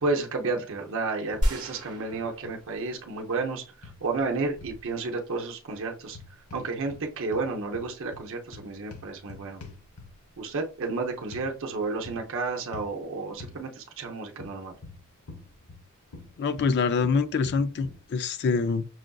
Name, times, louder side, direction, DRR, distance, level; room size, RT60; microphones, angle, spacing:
voice 1, 0.0-6.2 6.5-9.6 10.4-14.8, right 3 dB, 60° right, 0.7 m, -31 dB
sound 1, 1.3-1.8 2.1-2.6 3.8-4.8 6.1-7.0 7.3-10.3 11.3-11.5 12.0-12.3 12.7-12.9 13.4-13.6 14.4-15.8 16.1-18.0, left 3 dB, 80° left, 0.9 m, -45 dB
sound 2, 1.4-3.2 3.7-3.8, equal, 35° right, 1.0 m, -31 dB
voice 2, 16.4-18.9, left 5 dB, 50° left, 0.3 m, -25 dB
6.2 x 2.5 x 2.3 m
head